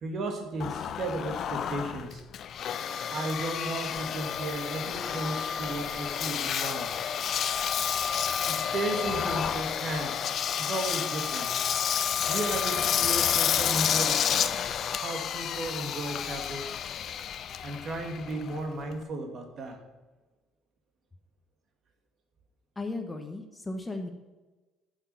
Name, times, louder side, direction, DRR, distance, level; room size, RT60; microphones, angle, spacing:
voice 1, 0.0-2.2 3.1-6.9 8.4-10.1 10.6-11.5 12.3-16.7 17.6-19.8, right 2 dB, 50° right, 4 dB, 2.1 m, -35 dB
Engine, 0.6-19.0, left 8 dB, 55° left, 0.5 m, -30 dB
voice 2, 22.7-24.1, left 2 dB, 15° left, 5 dB, 1.1 m, -35 dB
11.0 x 6.3 x 5.4 m, 1.2 s
cardioid pair, 105°, 0 cm